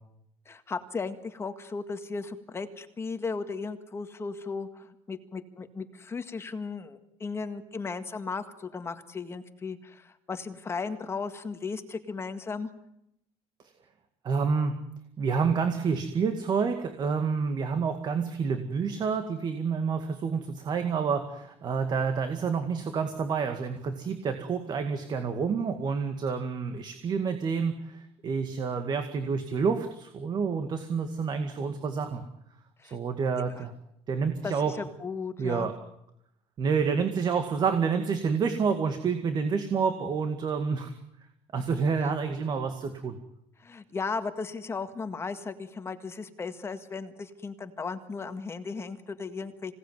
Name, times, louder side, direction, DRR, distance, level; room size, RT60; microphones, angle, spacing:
voice 1, 0.5-12.7 32.8-33.0 33.6-33.7 34.4-35.7 42.0-42.1 43.6-49.7, left 4 dB, 25° left, 8 dB, 1.9 m, -36 dB
voice 2, 14.2-14.7 15.2-32.2 32.8-33.7 34.1-34.7 35.4-35.7 36.6-40.9 41.5-43.2, right 5 dB, 40° right, 7 dB, 2.1 m, -28 dB
26.5 x 18.5 x 9.5 m, 0.79 s
cardioid pair, 150°, 11 cm